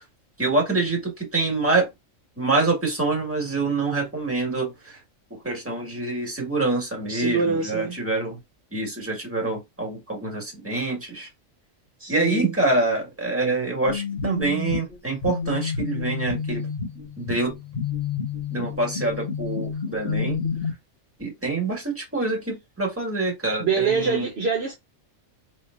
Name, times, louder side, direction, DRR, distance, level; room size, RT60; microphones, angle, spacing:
voice 1, 0.4-1.9 2.4-5.0 5.3-8.4 8.7-11.3 12.1-16.7 17.2-17.5 18.5-20.4 21.2-24.3, right 3 dB, 10° right, 1.6 m, -26 dB
voice 2, 7.1-8.0 12.0-12.5 23.6-24.7, right 5 dB, 55° right, 0.9 m, -25 dB
sound 1, 13.9-20.7, left 5 dB, 45° left, 1.4 m, -29 dB
4.7 x 3.3 x 2.5 m
omnidirectional pair, 1.4 m